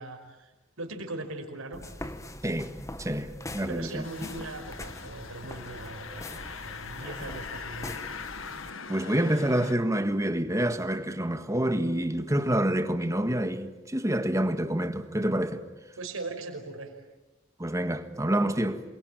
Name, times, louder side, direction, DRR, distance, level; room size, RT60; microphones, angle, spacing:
voice 1, 0.0-2.2 3.7-8.1 16.0-16.9, right 2 dB, 75° right, 5.2 m, -40 dB
sound 1, 1.7-8.7, left 1 dB, 15° left, 1.2 m, -42 dB
voice 2, 3.0-4.0 8.9-15.6 17.6-18.8, right 1 dB, 15° right, 1.6 m, -27 dB
sound 2, 4.0-9.8, left 5 dB, 70° left, 1.6 m, -41 dB
28.0 x 23.0 x 9.2 m
head